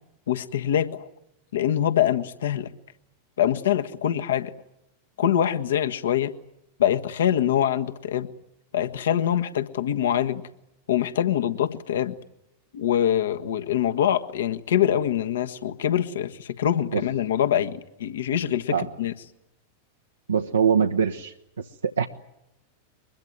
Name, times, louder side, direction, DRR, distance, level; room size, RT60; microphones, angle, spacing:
voice 1, 0.3-1.1 1.5-2.7 3.4-4.5 5.2-6.3 6.8-8.3 8.7-10.4 10.9-12.2 12.7-19.1, left 10 dB, 65° left, 8 dB, 1.5 m, -24 dB
voice 2, 20.3-21.3 21.8-22.1, right 6 dB, 80° right, 4 dB, 1.0 m, -22 dB
23.0 x 21.5 x 9.4 m, 0.85 s
figure-of-eight pair, 90°, 0 cm